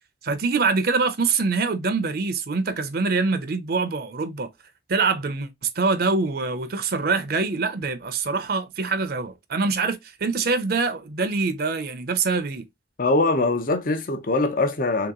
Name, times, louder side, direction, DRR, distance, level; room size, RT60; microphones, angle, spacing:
voice 1, 0.2-4.5 4.9-12.7, right 4 dB, 60° right, 0.6 m, -24 dB
voice 2, 13.0-15.1, left 2 dB, 50° left, 0.7 m, -22 dB
3.3 x 2.9 x 3.7 m
head